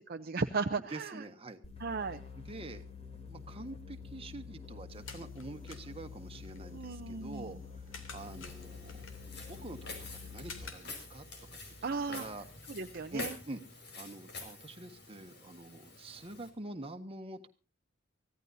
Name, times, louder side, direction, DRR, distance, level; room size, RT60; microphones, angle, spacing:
voice 1, 0.1-1.2 1.8-2.2 6.7-7.6 11.8-12.2 12.7-13.3, right 4 dB, 50° right, 6 dB, 0.7 m, -36 dB
voice 2, 0.9-1.6 2.5-2.8 3.3-9.0 9.5-9.9 10.2-11.2 11.5-11.6 11.9-12.5 13.1-13.6 13.9-17.5, right 2 dB, 30° right, 6 dB, 1.5 m, -46 dB
sound 1, 1.6-10.8, left 6 dB, 30° left, 3.1 m, -48 dB
sound 2, 4.9-13.3, left 4 dB, 90° left, 2.9 m, -53 dB
Walk footsteps, 8.2-16.5, left 3 dB, 60° left, 5.2 m, -48 dB
24.5 x 16.0 x 2.7 m, 0.33 s
head